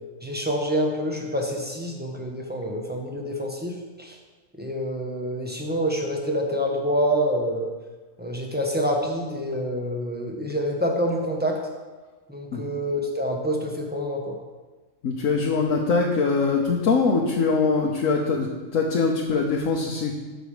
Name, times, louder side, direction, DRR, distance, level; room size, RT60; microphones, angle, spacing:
voice 1, 0.2-4.2 4.6-7.7 8.2-11.6 12.3-14.4, equal, 10° right, 0 dB, 1.2 m, -27 dB
voice 2, 15.0-18.5 18.7-20.1, left 4 dB, 80° left, 0 dB, 1.3 m, -22 dB
13.0 x 5.3 x 5.0 m, 1.3 s
omnidirectional pair, 1.4 m